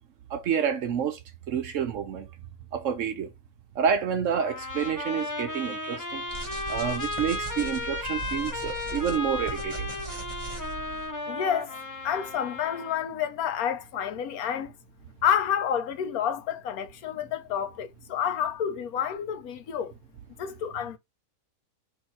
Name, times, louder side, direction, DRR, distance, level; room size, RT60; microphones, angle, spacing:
voice 1, 0.3-1.2 1.5-2.3 2.7-3.3 3.8-6.2 6.7-9.9, right 7 dB, 65° right, 0.9 m, -28 dB
Trumpet, 4.4-13.0, left 2 dB, 20° left, 0.5 m, -35 dB
sound 1, 6.3-11.1, right 3 dB, 25° right, 1.1 m, -39 dB
voice 2, 11.3-11.8 12.0-14.7 15.2-19.9 20.4-21.0, left 8 dB, 75° left, 1.2 m, -29 dB
3.5 x 2.6 x 4.5 m
omnidirectional pair, 1.6 m